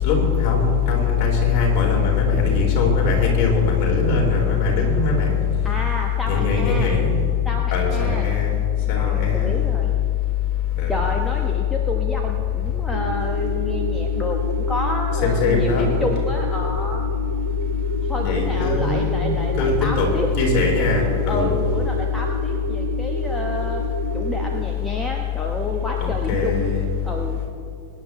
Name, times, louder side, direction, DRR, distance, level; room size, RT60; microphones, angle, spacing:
voice 1, 0.0-5.5 6.2-7.1 7.7-8.5 8.9-9.5 10.8-11.1 15.1-15.9 18.2-20.1 20.3-21.5 26.0-26.8, left 5 dB, 40° left, -3 dB, 4.0 m, -20 dB
voice 2, 5.6-6.9 7.4-8.3 8.9-9.9 10.9-17.1 18.0-20.3 21.3-23.8 24.1-26.7 27.0-27.4, left 1 dB, 10° left, 1 dB, 1.1 m, -29 dB
sound 1, 12.9-24.6, right 5 dB, 70° right, 0.6 m, -31 dB
23.5 x 10.5 x 3.1 m, 2.4 s
figure-of-eight pair, 90°, 0 cm